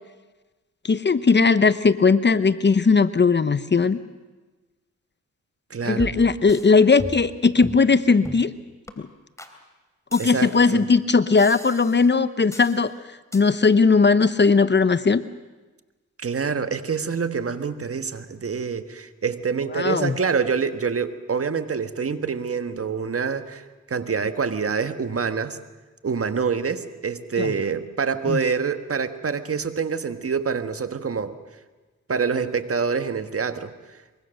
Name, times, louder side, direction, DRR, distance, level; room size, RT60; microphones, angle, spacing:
voice 1, 0.8-4.0 5.8-8.5 9.0-9.1 10.1-12.9 13.3-15.2 19.8-20.2 27.4-27.5 28.3-28.4, left 4 dB, 35° left, 14 dB, 0.9 m, -18 dB
voice 2, 5.7-6.1 10.2-10.8 16.2-25.6 26.0-31.3 32.1-33.7, right 5 dB, 50° right, 10 dB, 1.5 m, -26 dB
sound 1, 6.0-6.7 7.0-7.3 7.6-7.9 8.2-8.5 8.9-9.0 9.4-9.5 10.1-10.7 11.4-12.1 12.5-12.8 13.3-13.4, left 1 dB, 10° left, 3.0 m, -37 dB
24.0 x 22.5 x 6.5 m, 1.2 s
cardioid pair, 60°, 30 cm